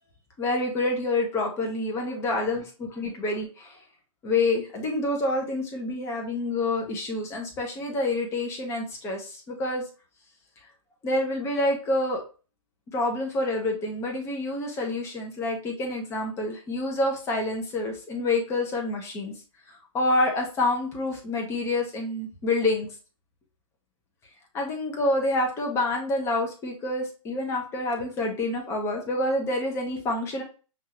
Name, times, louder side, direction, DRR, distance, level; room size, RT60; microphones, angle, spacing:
voice 1, 0.4-3.8 4.2-9.8 11.0-12.2 12.9-19.3 19.9-22.9 24.5-30.4, left 2 dB, 15° left, 1 dB, 1.0 m, -27 dB
5.5 x 2.7 x 3.0 m, 0.35 s
hypercardioid pair, 150°, 18 cm